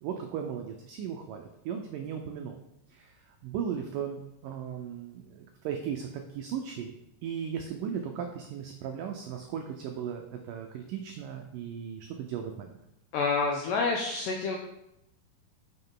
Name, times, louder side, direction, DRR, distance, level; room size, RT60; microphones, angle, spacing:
voice 1, 0.0-2.6 2.9-6.9 7.2-12.8, right 8 dB, 85° right, 4 dB, 1.9 m, -37 dB
voice 2, 13.1-14.6, left 4 dB, 85° left, 1 dB, 1.9 m, -28 dB
7.7 x 6.4 x 3.8 m, 0.83 s
omnidirectional pair, 4.6 m